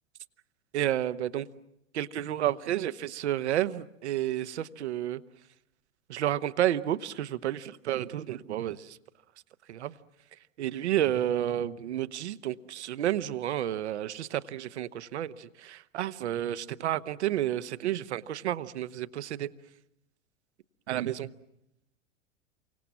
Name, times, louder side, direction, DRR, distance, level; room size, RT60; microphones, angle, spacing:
voice 1, 0.7-1.5 1.9-5.2 6.1-9.0 9.7-10.0 10.6-19.5 20.9-21.3, right 12 dB, 55° right, 14 dB, 1.2 m, -31 dB
29.5 x 25.0 x 7.3 m, 0.82 s
figure-of-eight pair, 95°, 40 cm